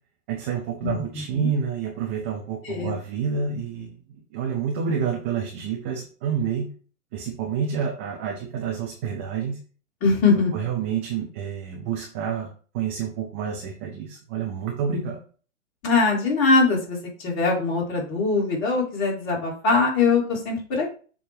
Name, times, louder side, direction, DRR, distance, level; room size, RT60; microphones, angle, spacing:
voice 1, 0.3-4.0 4.3-6.7 7.1-9.6 10.5-15.2, right 7 dB, 10° right, 0 dB, 0.3 m, -28 dB
voice 2, 0.8-1.5 2.6-3.0 10.0-10.5 15.8-20.9, left 4 dB, 30° left, -2 dB, 2.8 m, -22 dB
6.9 x 2.8 x 5.1 m, 0.39 s
figure-of-eight pair, 115°, 40 cm